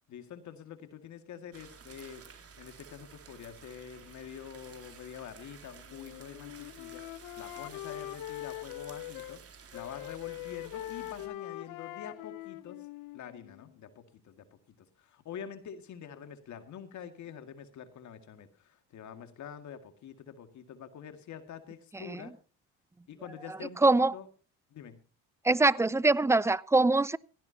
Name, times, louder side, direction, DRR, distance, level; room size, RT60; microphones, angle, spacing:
voice 1, 0.1-2.2 2.6-12.9 13.1-14.4 15.0-22.3 23.1-24.3 24.7-25.0, left 8 dB, 60° left, 2.2 m, -46 dB
sound 1, 1.5-11.3, right 6 dB, 45° right, 4.0 m, -53 dB
Wind instrument woodwind instrument, 5.9-9.4 9.7-13.7, left 16 dB, 75° left, 0.9 m, -43 dB
voice 2, 23.8-24.1 25.4-27.2, right 2 dB, 10° right, 0.5 m, -23 dB
17.0 x 16.5 x 2.8 m
supercardioid pair, 90°, 33 cm